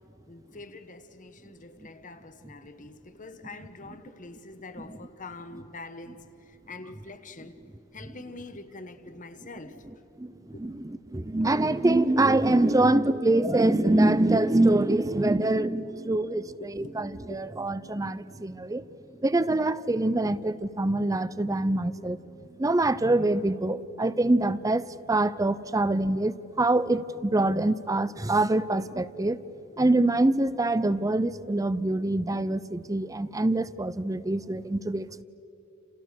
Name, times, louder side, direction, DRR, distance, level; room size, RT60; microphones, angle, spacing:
voice 1, 0.3-7.6 7.9-9.8 10.5-10.7 15.8-17.0 17.3-17.4 20.2-20.4 22.0-22.1, left 2 dB, 35° left, 10 dB, 1.2 m, -45 dB
voice 2, 10.6-18.8 19.2-22.2 22.6-29.4 29.8-35.2, right 2 dB, 15° right, 16 dB, 0.5 m, -25 dB
30.0 x 29.0 x 6.4 m, 3.0 s
head